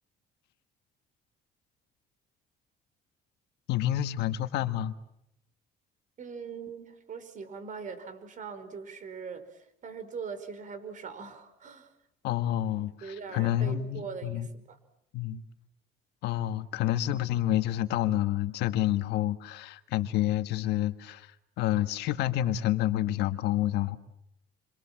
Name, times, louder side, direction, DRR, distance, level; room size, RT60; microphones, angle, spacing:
voice 1, 3.7-4.9 12.2-14.5 15.1-15.4 16.2-21.3 21.6-24.0, left 13 dB, 85° left, 1.6 m, -28 dB
voice 2, 6.2-11.9 13.0-14.8, right 5 dB, 50° right, 5.0 m, -41 dB
29.5 x 26.0 x 7.4 m
cardioid pair, 110°, 17 cm